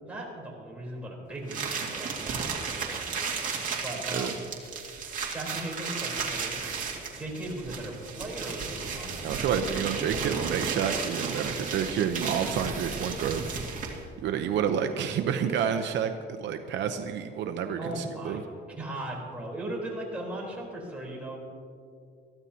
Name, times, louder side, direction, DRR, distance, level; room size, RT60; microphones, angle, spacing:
voice 1, 0.0-3.1 3.8-4.4 5.2-6.6 7.2-9.6 17.8-18.4 18.8-21.4, right 1 dB, 5° right, -4 dB, 3.9 m, -38 dB
sound 1, 1.5-14.1, right 5 dB, 40° right, 2.2 m, -34 dB
voice 2, 9.2-13.4 14.2-18.4, right 8 dB, 70° right, 7 dB, 0.8 m, -29 dB
22.5 x 14.0 x 2.9 m, 2.4 s
cardioid pair, 150°, 20 cm